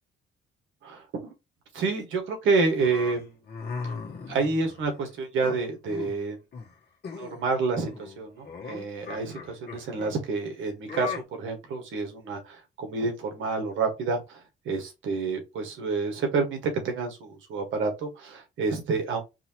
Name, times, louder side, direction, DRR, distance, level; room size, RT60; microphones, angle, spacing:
voice 1, 0.8-1.3 1.7-3.3 3.8-3.9 4.3-6.4 7.2-19.2, right 4 dB, 80° right, 1.8 m, -29 dB
sound 1, 2.8-4.9 5.4-6.2 6.5-6.7 7.0-7.4 7.7-10.1 10.9-11.2, left 5 dB, 55° left, 1.4 m, -38 dB
4.7 x 2.8 x 3.0 m
cardioid pair, 90°, 20 cm